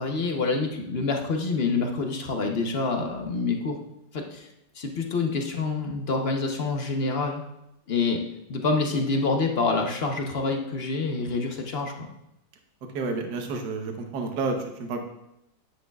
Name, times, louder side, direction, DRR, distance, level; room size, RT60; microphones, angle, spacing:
voice 1, 0.0-3.8 4.1-4.5 4.7-7.4 7.9-8.2 8.5-12.1, left 3 dB, 45° left, 3 dB, 0.9 m, -27 dB
voice 2, 12.9-15.0, right 3 dB, 65° right, 4 dB, 1.5 m, -30 dB
10.0 x 10.0 x 2.4 m, 0.84 s
omnidirectional pair, 2.0 m